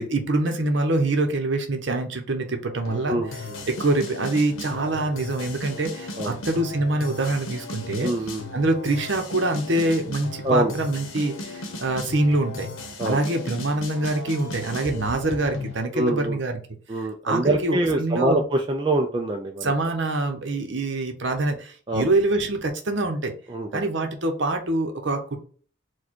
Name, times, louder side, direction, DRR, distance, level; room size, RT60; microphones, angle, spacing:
voice 1, 0.0-3.2 3.7-8.1 8.5-12.7 13.0-16.6 17.2-18.4 19.6-23.3 23.7-25.4, right 2 dB, 60° right, 5 dB, 0.8 m, -25 dB
sound 1, 2.9-15.8, left 2 dB, 85° left, 0.9 m, -36 dB
voice 2, 3.1-3.6 6.2-6.4 8.0-8.4 10.4-10.7 13.0-13.2 15.9-16.4 16.9-19.7 21.9-22.1 23.5-23.8, right 1 dB, 25° right, 2 dB, 0.4 m, -25 dB
4.6 x 2.3 x 4.4 m, 0.43 s
head